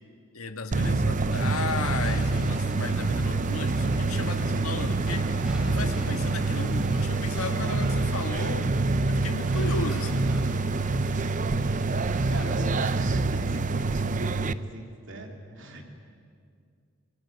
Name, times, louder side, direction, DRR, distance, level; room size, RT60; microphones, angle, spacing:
voice 1, 0.3-8.7 9.0-10.3, left 3 dB, 85° left, 6 dB, 1.8 m, -35 dB
sound 1, 0.7-14.5, right 3 dB, 35° right, 0.6 m, -26 dB
sound 2, 1.3-14.4, equal, 5° right, 2.8 m, -48 dB
voice 2, 12.3-15.9, right 1 dB, 60° right, 3 dB, 3.1 m, -39 dB
24.5 x 21.0 x 9.8 m, 2.2 s
head